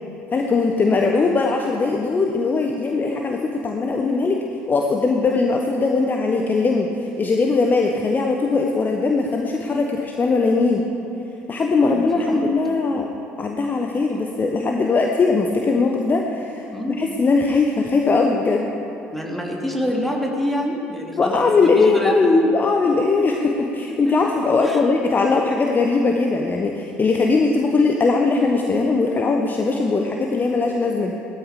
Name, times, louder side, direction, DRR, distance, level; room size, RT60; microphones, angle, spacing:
voice 1, 0.3-4.4 4.7-10.9 11.5-13.1 13.4-18.7 21.2-31.1, left 3 dB, 30° left, 2 dB, 1.0 m, -20 dB
voice 2, 11.9-12.6 12.9-13.0 16.7-17.0 19.1-22.2 23.2-23.3 24.0-24.1 24.6-24.8, equal, 5° left, -1 dB, 2.8 m, -27 dB
17.0 x 13.0 x 5.0 m, 2.9 s
figure-of-eight pair, 60°, 7 cm